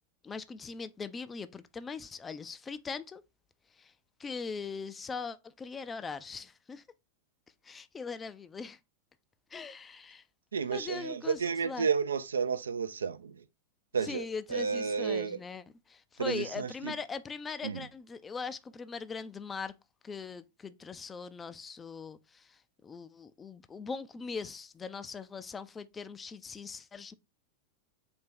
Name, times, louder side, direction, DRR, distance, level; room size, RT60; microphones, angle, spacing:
voice 1, 0.2-3.2 3.7-3.9 4.2-6.8 7.6-8.8 9.5-10.2 10.7-11.9 14.0-19.7 20.0-27.1, left 5 dB, 15° left, 0.4 m, -41 dB
voice 2, 10.5-13.3 13.9-14.2 14.5-15.4 16.2-16.9 17.6-17.8, right 6 dB, 70° right, 0.4 m, -31 dB
4.3 x 2.9 x 3.6 m
figure-of-eight pair, 90°, 0 cm